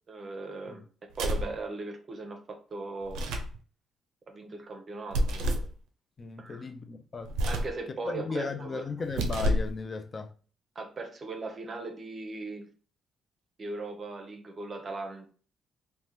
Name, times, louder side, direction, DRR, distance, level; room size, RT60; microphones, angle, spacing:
voice 1, 0.1-3.2 4.3-5.7 6.4-6.7 7.5-8.9 10.7-12.7 13.6-15.3, right 3 dB, 40° right, 0.6 m, -39 dB
sound 1, 1.1-1.6 3.0-3.6 5.1-5.7 7.3-7.8 9.0-9.8, equal, 90° right, 0.4 m, -29 dB
voice 2, 6.2-7.3 8.1-10.3, left 4 dB, 35° left, 0.4 m, -36 dB
3.3 x 2.1 x 2.8 m
cardioid pair, 90°, 0 cm